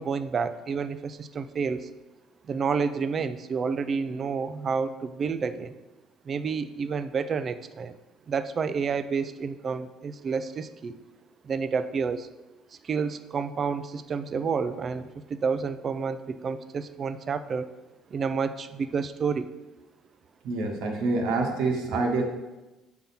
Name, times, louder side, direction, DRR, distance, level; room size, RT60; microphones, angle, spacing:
voice 1, 0.0-1.9 2.4-5.7 6.3-8.0 8.3-11.0 11.4-12.3 12.8-17.7 18.1-19.5 21.9-22.0, right 5 dB, 35° right, 11 dB, 0.4 m, -29 dB
voice 2, 20.4-22.2, right 3 dB, 70° right, 1 dB, 1.3 m, -26 dB
7.0 x 3.9 x 5.8 m, 1.1 s
cardioid pair, 145°, 0 cm